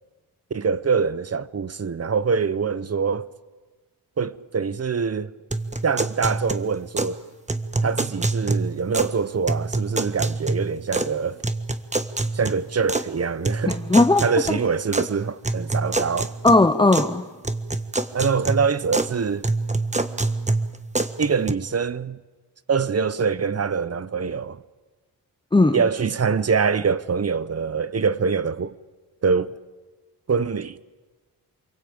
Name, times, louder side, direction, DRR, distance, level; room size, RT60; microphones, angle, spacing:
voice 1, 0.5-3.3 4.2-5.3 5.8-7.2 7.8-11.4 12.3-13.8 14.2-16.3 18.1-19.5 21.2-22.2 22.7-24.6 25.7-28.7 29.2-29.6 30.3-30.8, right 5 dB, 35° right, 0.9 m, -24 dB
sound 1, 5.5-7.2 7.5-9.2 9.5-11.2 11.4-13.1 13.4-15.1 15.4-17.1 17.4-19.1 19.4-21.5, right 2 dB, 15° right, 1.4 m, -26 dB
voice 2, 13.7-14.3 16.4-17.2 25.5-25.8, left 2 dB, 10° left, 0.9 m, -17 dB
29.0 x 22.5 x 8.8 m
cardioid pair, 95°, 41 cm